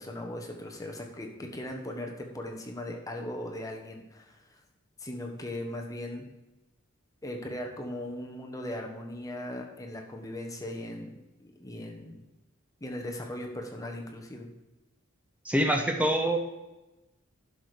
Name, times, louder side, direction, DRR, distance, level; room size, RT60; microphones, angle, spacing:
voice 1, 0.0-4.4 5.0-6.3 7.2-12.2 12.8-14.5, left 1 dB, 15° left, 2 dB, 1.1 m, -38 dB
voice 2, 15.5-16.4, right 1 dB, 5° right, 3 dB, 0.8 m, -25 dB
11.0 x 6.3 x 4.9 m, 1.0 s
head